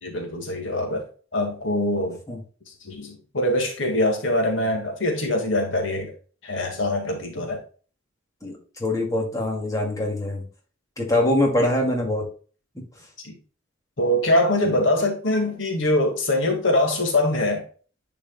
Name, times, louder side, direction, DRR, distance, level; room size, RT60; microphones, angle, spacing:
voice 1, 0.0-1.1 1.3-2.2 2.8-6.1 6.4-7.6 13.2-13.3 14.0-17.6, left 1 dB, 75° left, 1.9 m, -23 dB
voice 2, 8.4-10.4 11.0-12.3 12.7-12.8, left 1 dB, 20° left, 2.3 m, -24 dB
10.0 x 4.9 x 2.2 m
head